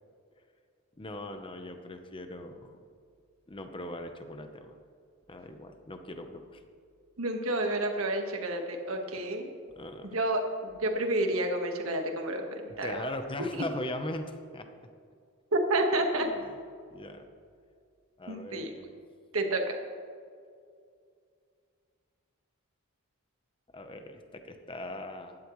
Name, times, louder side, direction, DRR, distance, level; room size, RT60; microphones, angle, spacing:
voice 1, 1.0-2.8 3.5-4.8 5.3-6.6 9.1-9.2 9.7-10.1 12.8-14.7 16.2-16.5 16.9-17.2 18.2-18.9 23.7-25.4, left 1 dB, 25° left, 6 dB, 0.8 m, -40 dB
voice 2, 7.2-9.5 10.0-10.4 10.7-12.9 15.5-16.3 18.3-18.7 19.3-19.8, right 1 dB, 75° right, 3 dB, 1.5 m, -29 dB
16.0 x 11.5 x 3.2 m, 2.3 s
head